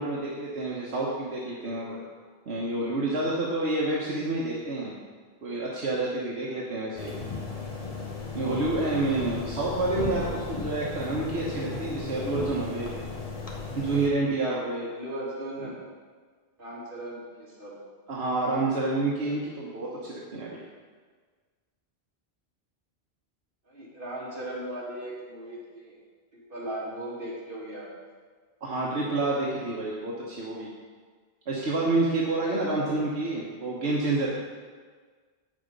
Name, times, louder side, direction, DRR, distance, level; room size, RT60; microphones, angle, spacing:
voice 1, 0.0-2.0 2.5-4.9 5.4-7.3 8.3-12.9 13.7-14.9 15.6-15.7 18.1-20.6 28.6-30.7 31.5-34.3, right 2 dB, 80° right, -5 dB, 1.5 m, -28 dB
sound 1, 7.0-14.1, left 3 dB, 35° left, 1.3 m, -35 dB
voice 2, 14.9-15.7 16.6-17.7 23.7-26.0 26.3-27.9, right 1 dB, 55° right, -7 dB, 3.0 m, -37 dB
9.2 x 7.2 x 5.3 m, 1.5 s
omnidirectional pair, 1.1 m